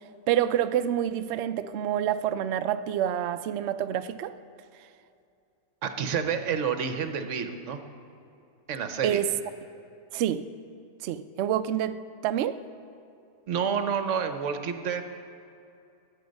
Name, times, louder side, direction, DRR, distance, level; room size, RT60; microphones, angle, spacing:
voice 1, 0.3-4.3 9.0-9.3 10.1-10.4 11.0-12.0 12.2-12.6, right 10 dB, 85° right, 11 dB, 0.6 m, -27 dB
voice 2, 5.8-7.8 8.7-9.2 13.5-15.1, right 7 dB, 55° right, 8 dB, 1.0 m, -29 dB
19.0 x 8.7 x 5.3 m, 2.6 s
omnidirectional pair, 1.7 m